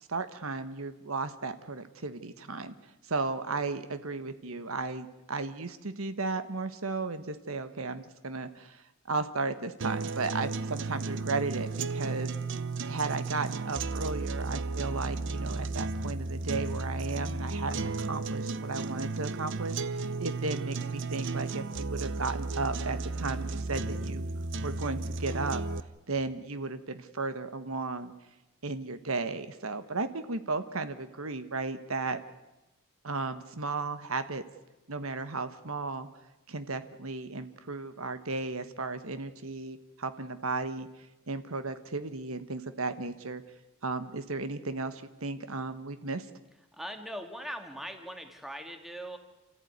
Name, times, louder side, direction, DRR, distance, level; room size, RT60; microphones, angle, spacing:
voice 1, 0.1-2.8 3.1-12.3 12.9-24.3 24.6-25.6 26.1-28.1 28.6-32.2 33.0-34.4 34.9-36.1 36.5-40.9 41.3-43.4 43.8-46.3, right 3 dB, 75° right, 10 dB, 1.3 m, -35 dB
sound 1, 9.8-25.8, right 3 dB, 60° right, 0.8 m, -34 dB
voice 2, 46.8-49.2, equal, ahead, 5 dB, 2.2 m, -40 dB
28.5 x 14.5 x 9.5 m, 1.0 s
head